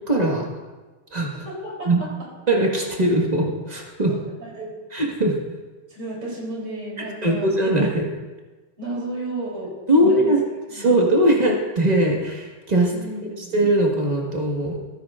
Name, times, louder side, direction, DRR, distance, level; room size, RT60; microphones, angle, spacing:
voice 1, 0.1-0.5 1.1-1.3 1.9-2.0 2.5-4.1 4.9-5.4 7.2-8.0 9.9-10.4 10.7-12.9 13.5-14.8, right 1 dB, 20° right, -1 dB, 1.3 m, -20 dB
voice 2, 1.4-2.1 4.1-4.7 5.9-7.5 8.8-10.3 10.7-11.1 12.9-13.6, right 2 dB, 75° right, -4 dB, 4.3 m, -33 dB
14.0 x 13.0 x 2.5 m, 1.3 s
omnidirectional pair, 2.4 m